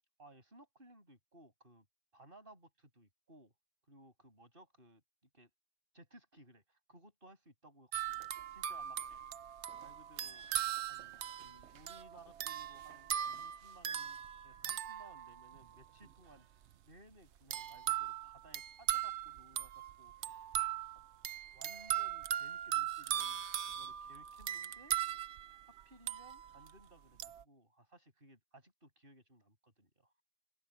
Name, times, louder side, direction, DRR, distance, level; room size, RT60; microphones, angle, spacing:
voice 1, 0.2-1.9 2.1-3.5 3.8-5.0 5.3-5.5 5.9-9.0 9.8-10.4 10.8-14.2 14.4-20.6 21.4-24.9 25.6-30.1, right 1 dB, 45° right, 7.6 m, -61 dB
sound 1, 7.9-15.8 17.5-26.7 27.2-27.4, right 10 dB, 65° right, 1.0 m, -39 dB
open air
omnidirectional pair, 1.3 m